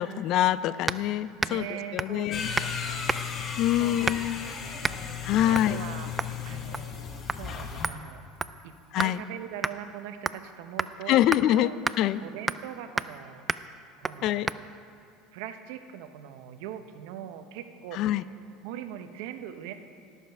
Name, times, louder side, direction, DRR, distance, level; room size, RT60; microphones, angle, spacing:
voice 1, 0.0-1.7 1.9-2.5 3.6-4.5 5.2-5.8 8.9-9.2 11.1-11.7 12.0-12.2 14.2-14.5 18.0-18.2, left 13 dB, 60° left, 16 dB, 0.3 m, -25 dB
sound 1, 0.9-1.1 1.4-1.7 2.0-2.2 2.5-2.7 3.1-3.4 4.0-4.4 4.8-5.0 5.5-5.7 6.2-6.4 6.7-7.0 7.3-7.4 7.8-9.2 9.6-9.8 10.3-10.5 10.8-10.9 11.3-11.4 11.8-12.0 12.5-12.7 13.0-13.2 13.5-13.7 14.0-14.2 14.5-14.6, right 3 dB, 20° right, 0.3 m, -31 dB
voice 2, 1.4-3.2 3.5-4.9 5.5-8.2 8.6-11.8 12.2-13.4 14.0-14.5 15.3-18.2 18.6-19.7, right 10 dB, 75° right, 9 dB, 0.7 m, -41 dB
sound 2, 2.3-7.9, left 6 dB, 40° left, 1.1 m, -35 dB
18.5 x 7.3 x 3.5 m, 2.5 s
supercardioid pair, 95°, 0 cm